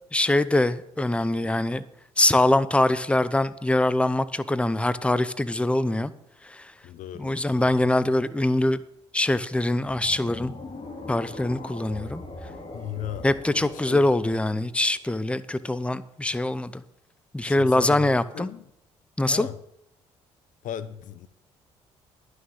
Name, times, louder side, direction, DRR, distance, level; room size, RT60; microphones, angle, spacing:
voice 1, 0.1-1.8 2.2-6.1 6.4-6.7 7.2-8.8 9.1-10.5 11.1-12.2 13.2-16.8 17.3-18.5 19.2-19.5, left 1 dB, 10° left, 0.7 m, -23 dB
voice 2, 6.8-7.8 12.7-14.3 17.4-18.6 19.3-19.6 20.6-21.3, left 10 dB, 65° left, 0.7 m, -37 dB
sound 1, 9.8-15.1, left 2 dB, 40° left, 2.7 m, -41 dB
11.0 x 6.5 x 7.3 m
hypercardioid pair, 55°, 14 cm